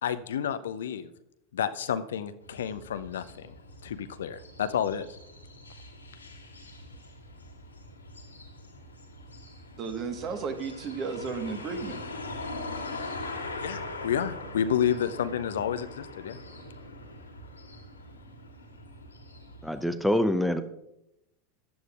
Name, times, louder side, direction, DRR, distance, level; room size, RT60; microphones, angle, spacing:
voice 1, 0.0-1.1 1.5-3.5 3.8-5.1 13.6-16.4, left 8 dB, 70° left, 12 dB, 0.6 m, -30 dB
sound 1, 2.4-19.9, left 2 dB, 85° left, 1.9 m, -42 dB
voice 2, 9.8-12.0, right 5 dB, 40° right, 7 dB, 1.4 m, -33 dB
voice 3, 19.6-20.6, left 1 dB, ahead, 9 dB, 0.7 m, -25 dB
15.5 x 11.0 x 2.4 m, 0.84 s
figure-of-eight pair, 80°, 0 cm